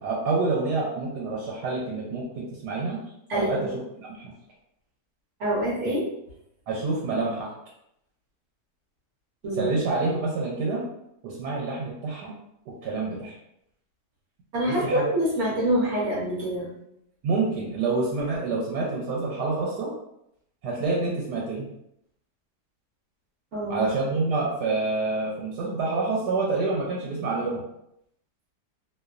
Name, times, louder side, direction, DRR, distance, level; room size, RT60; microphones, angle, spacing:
voice 1, 0.0-3.0 3.3-3.6 4.1-4.3 6.7-7.5 9.6-10.8 11.2-12.3 12.8-13.4 14.6-15.0 17.2-19.9 20.6-21.7 23.7-27.6, right 3 dB, 85° right, -4 dB, 1.2 m, -27 dB
voice 2, 3.3-3.7 5.4-6.0 9.4-9.7 14.5-16.7 23.5-23.9, equal, 55° right, -5 dB, 0.9 m, -26 dB
2.8 x 2.0 x 2.3 m, 0.78 s
omnidirectional pair, 1.8 m